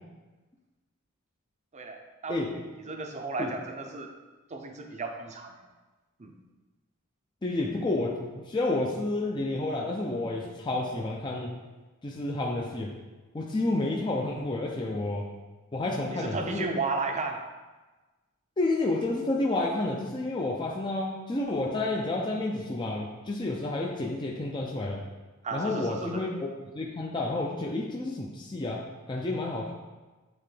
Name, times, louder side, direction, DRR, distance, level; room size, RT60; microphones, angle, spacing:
voice 1, 1.7-2.5 2.9-4.1 4.5-5.6 6.2-6.3 16.1-17.5 25.4-26.2, right 3 dB, 35° right, 4 dB, 0.6 m, -34 dB
voice 2, 7.4-11.5 12.0-12.9 13.3-15.3 15.7-16.7 18.6-25.0 25.5-26.5 26.7-29.7, left 2 dB, 20° left, -2 dB, 0.5 m, -30 dB
8.8 x 3.3 x 3.3 m, 1.2 s
head